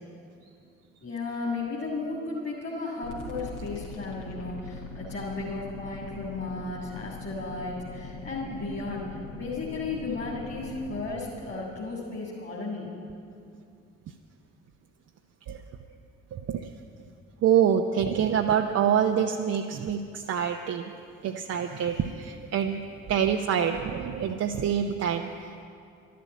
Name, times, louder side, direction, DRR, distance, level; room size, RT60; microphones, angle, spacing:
voice 1, 1.0-12.9, left 3 dB, 30° left, -4 dB, 2.8 m, -34 dB
sound 1, 3.0-11.0, left 3 dB, 60° left, 2.2 m, -41 dB
voice 2, 16.3-16.7 17.4-20.9 21.2-22.8 23.1-25.6, right 8 dB, 45° right, 3 dB, 0.7 m, -26 dB
12.0 x 12.0 x 8.3 m, 2.5 s
figure-of-eight pair, 40°, 35 cm